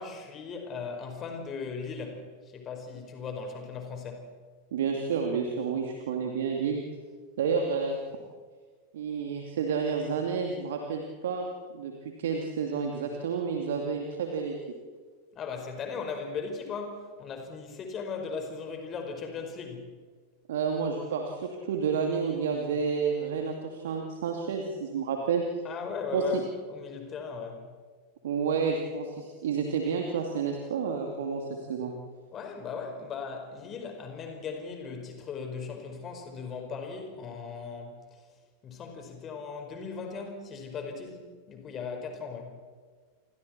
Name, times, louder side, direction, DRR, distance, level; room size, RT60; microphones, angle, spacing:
voice 1, 0.0-4.3 15.3-19.9 25.6-27.7 32.3-38.0 38.6-42.6, left 5 dB, 30° left, 4 dB, 4.8 m, -38 dB
voice 2, 4.7-6.9 7.4-8.0 8.9-11.5 11.7-11.9 12.2-14.6 20.5-25.4 26.1-26.4 28.2-31.9, right 5 dB, 60° right, 2 dB, 2.6 m, -30 dB
29.0 x 26.5 x 4.4 m, 1.6 s
figure-of-eight pair, 90°, 0 cm